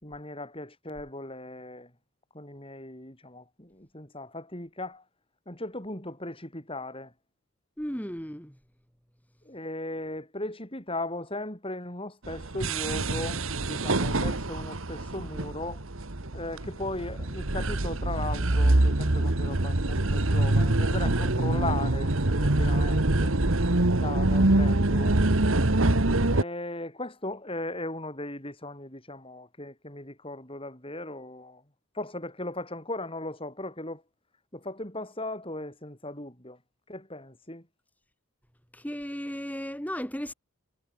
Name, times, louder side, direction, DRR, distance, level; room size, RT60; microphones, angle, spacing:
voice 1, 0.0-1.9 2.3-5.0 5.5-7.1 9.4-15.8 16.3-23.3 23.9-25.5 26.3-31.6 31.9-34.0 34.5-36.6 36.9-37.7, left 2 dB, 25° left, 6.7 m, -37 dB
voice 2, 7.8-8.6 38.7-40.3, equal, 5° left, 5.4 m, -35 dB
sound 1, 12.3-26.4, right 2 dB, 65° right, 1.6 m, -25 dB
head